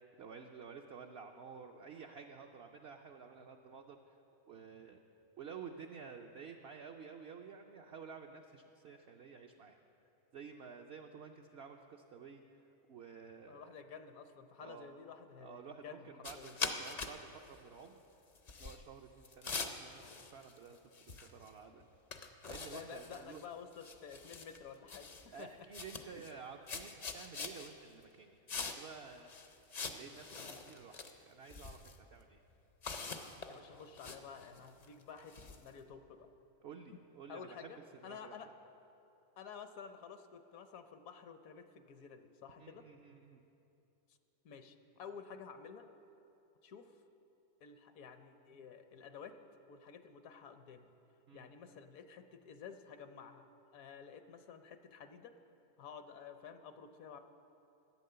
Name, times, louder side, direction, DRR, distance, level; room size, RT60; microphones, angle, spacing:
voice 1, 0.2-4.2 4.5-5.0 5.4-9.8 10.3-12.4 12.9-13.7 14.6-14.9 15.4-17.2 17.5-18.0 18.6-20.8 21.0-21.8 22.5-23.4 25.3-29.6 29.9-32.4 36.6-37.7 38.0-38.4 42.6-43.4 51.3-51.5, right 6 dB, 65° right, 3 dB, 0.6 m, -52 dB
voice 2, 13.5-16.1 16.3-16.6 22.7-25.5 26.1-26.2 33.5-36.3 36.9-37.0 37.3-37.8 38.0-38.5 39.4-42.8 44.4-45.9 46.6-46.9 47.6-49.4 49.7-50.9 51.3-53.5 53.7-55.3 55.8-57.2, left 6 dB, 70° left, 8 dB, 1.0 m, -51 dB
sound 1, 16.2-17.2 17.4-17.6 18.4-18.8 19.2-20.7 20.9-21.5 21.8-21.9 22.1-23.5 23.7-24.6 24.9-25.4 25.7-26.3 26.7-27.7 28.5-29.0 29.3-31.1 31.5-32.0 32.8-35.7, left 4 dB, 50° left, 0.5 m, -44 dB
12.0 x 8.6 x 6.7 m, 2.8 s
omnidirectional pair, 1.6 m